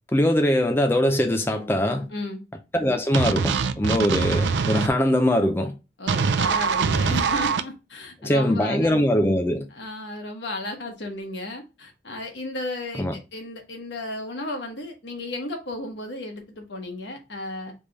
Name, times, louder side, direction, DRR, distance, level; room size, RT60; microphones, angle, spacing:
voice 1, 0.1-2.1 2.7-5.7 8.2-9.7 13.0-13.2, equal, 15° left, 0.4 m, -22 dB
voice 2, 2.1-2.4 6.0-9.0 9.7-17.7, left 2 dB, 80° left, 1.2 m, -34 dB
sound 1, 3.1-4.9 6.1-7.6, right 5 dB, 80° right, 0.4 m, -23 dB
3.4 x 3.3 x 3.9 m
head